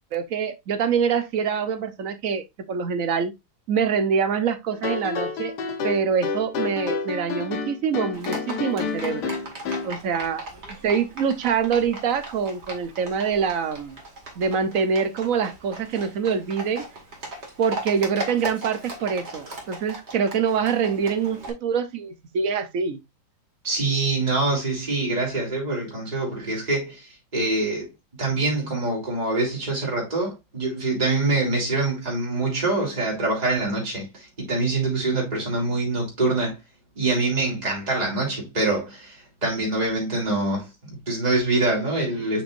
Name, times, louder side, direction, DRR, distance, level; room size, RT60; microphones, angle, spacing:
voice 1, 0.1-3.3 3.7-5.5 5.8-9.3 9.8-10.4 10.8-14.0 14.4-16.8 17.6-23.0, right 6 dB, 55° right, 1.1 m, -25 dB
sound 1, 4.7-9.9, left 5 dB, 65° left, 1.5 m, -29 dB
Livestock farm animals working animals, 8.1-21.5, right 2 dB, 35° right, 2.3 m, -38 dB
voice 2, 23.6-27.9 28.2-36.6 37.0-42.4, right 2 dB, 20° right, 2.9 m, -25 dB
7.3 x 5.8 x 2.5 m
omnidirectional pair, 2.0 m